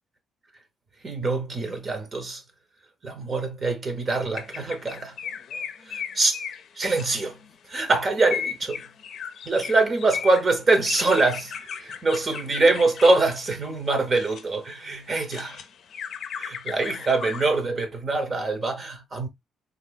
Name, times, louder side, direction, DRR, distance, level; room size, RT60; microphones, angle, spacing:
voice 1, 1.0-2.4 3.0-5.2 5.9-6.4 6.8-7.4 7.7-8.8 9.4-15.6 16.4-19.3, right 3 dB, 40° right, 0.8 m, -24 dB
sound 1, 4.3-7.5 8.2-14.4 14.9-17.6, left 7 dB, 65° left, 0.5 m, -36 dB
3.7 x 2.7 x 2.2 m
cardioid pair, 90°, 0 cm